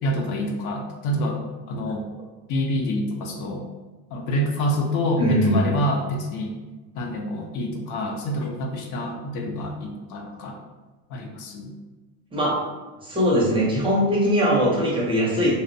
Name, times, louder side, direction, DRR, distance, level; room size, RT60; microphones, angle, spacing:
voice 1, 0.0-1.4 1.7-2.1 2.5-3.6 4.1-6.5 6.9-10.6 11.1-11.7, equal, 60° left, 2 dB, 0.5 m, -27 dB
voice 2, 5.2-5.7 12.3-12.6 13.0-15.6, equal, 15° right, -5 dB, 0.4 m, -21 dB
2.6 x 2.0 x 2.5 m, 1.2 s
cardioid pair, 150°, 34 cm